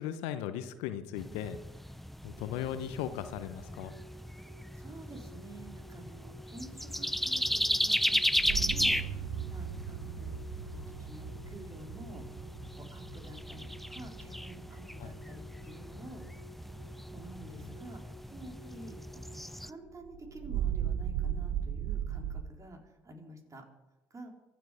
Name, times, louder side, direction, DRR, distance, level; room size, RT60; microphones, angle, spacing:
voice 1, 0.0-1.6 2.2-3.9 15.0-15.1 17.4-17.7, left 10 dB, 75° left, 11 dB, 1.0 m, -38 dB
sound 1, 1.2-19.7, equal, ahead, 0.6 m, -36 dB
sound 2, 2.4-21.4, equal, 50° right, 3.6 m, -55 dB
voice 2, 4.7-10.4 10.7-12.2 12.7-16.2 17.1-18.0 18.3-19.2 19.6-23.6 24.1-24.3, right 2 dB, 30° right, 2 dB, 4.1 m, -50 dB
sound 3, 8.2-17.2 17.6-18.0 18.3-18.4 18.8-18.9 19.9-22.4, right 9 dB, 65° right, 0.8 m, -38 dB
24.5 x 9.5 x 5.0 m, 1.1 s
hypercardioid pair, 55°, 11 cm